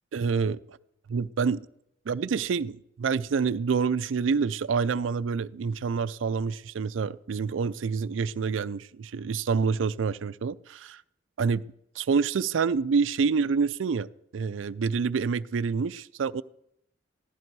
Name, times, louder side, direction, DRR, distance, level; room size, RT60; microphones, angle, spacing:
voice 1, 0.1-0.8 1.1-1.6 2.1-11.0 11.4-11.6 12.0-14.1 14.3-16.4, right 5 dB, 90° right, 0.4 m, -27 dB
15.5 x 13.5 x 4.7 m
head